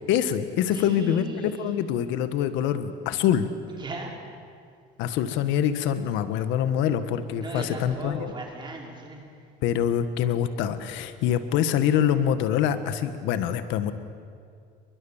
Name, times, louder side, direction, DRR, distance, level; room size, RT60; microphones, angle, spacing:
voice 1, 0.1-3.5 5.0-8.3 9.6-13.9, left 9 dB, 80° left, 11 dB, 1.6 m, -25 dB
voice 2, 0.7-1.7 3.7-4.1 7.4-9.3, right 2 dB, 25° right, 0 dB, 5.0 m, -37 dB
29.0 x 23.5 x 7.3 m, 2.3 s
cardioid pair, 150°, 19 cm